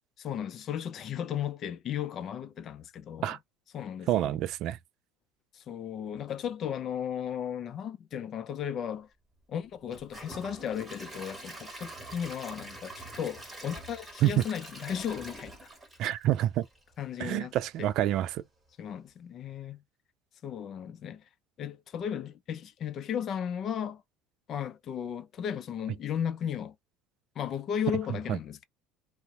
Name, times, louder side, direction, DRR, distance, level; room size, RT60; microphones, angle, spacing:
voice 1, 0.2-3.4 3.7-4.4 5.5-9.1 9.5-15.5 17.0-17.5 17.8-17.9 18.8-19.8 20.4-21.2 21.6-24.0 24.5-26.7 27.4-28.6, left 9 dB, 50° left, 0.5 m, -35 dB
voice 2, 4.1-4.8 14.2-14.4 16.0-16.7 17.2-18.4 28.3-28.4, right 13 dB, 60° right, 0.3 m, -27 dB
Gurgling / Toilet flush / Trickle dribble, 9.9-16.9 17.3-17.4 17.9-18.0, right 1 dB, 15° right, 1.5 m, -45 dB
2.7 x 2.1 x 3.5 m
hypercardioid pair, 80°, 0 cm